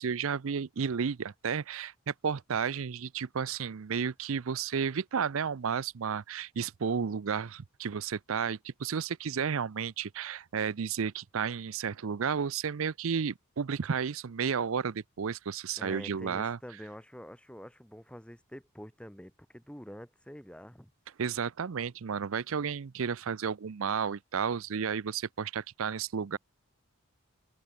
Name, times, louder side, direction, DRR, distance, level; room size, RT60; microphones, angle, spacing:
voice 1, 0.0-16.6 21.2-26.4, right 6 dB, 70° right, 0.5 m, -32 dB
voice 2, 15.8-20.9, equal, 5° left, 4.1 m, -46 dB
open air
head